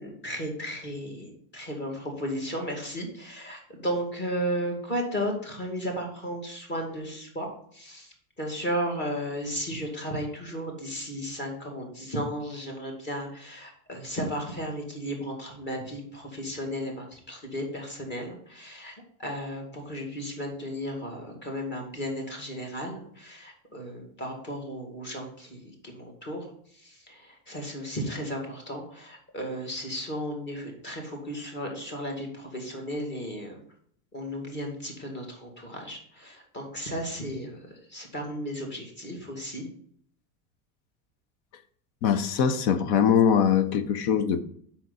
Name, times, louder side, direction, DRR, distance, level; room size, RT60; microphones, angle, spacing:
voice 1, 0.0-33.6 34.1-39.7, equal, 25° left, 2.3 m, -34 dB
voice 2, 42.0-44.4, left 8 dB, 55° left, 0.9 m, -22 dB
7.5 x 5.8 x 4.1 m
supercardioid pair, 135°, 44 cm